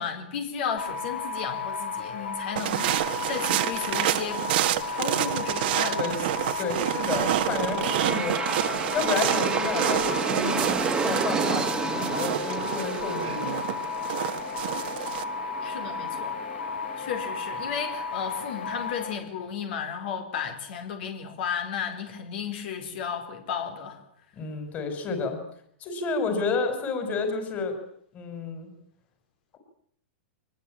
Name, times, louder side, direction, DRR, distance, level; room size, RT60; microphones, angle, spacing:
voice 1, 0.0-4.4 4.9-6.3 15.6-16.4 17.0-24.0, left 7 dB, 60° left, 5 dB, 4.4 m, -34 dB
sound 1, 0.8-19.1, left 4 dB, 90° left, 4.8 m, -34 dB
sound 2, 2.6-15.2, right 14 dB, 60° right, 1.6 m, -28 dB
voice 2, 6.6-8.4 8.9-13.9 24.3-25.4 25.8-27.8 28.1-28.7, left 4 dB, 25° left, 6 dB, 4.9 m, -30 dB
Aircraft, 6.9-18.0, right 5 dB, 10° right, 2.0 m, -33 dB
23.5 x 20.0 x 8.7 m, 0.69 s
supercardioid pair, 150°, 6 cm